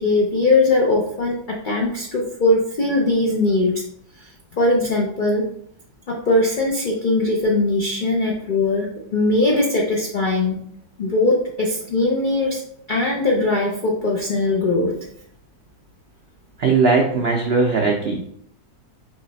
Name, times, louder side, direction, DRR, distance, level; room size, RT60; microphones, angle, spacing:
voice 1, 0.0-3.8 4.6-5.5 6.1-8.9 9.1-10.6 11.0-12.6 12.9-14.9, left 2 dB, 85° left, -1 dB, 0.4 m, -20 dB
voice 2, 16.6-18.3, right 4 dB, 85° right, 1 dB, 0.5 m, -19 dB
4.0 x 3.2 x 3.9 m, 0.68 s
omnidirectional pair, 1.8 m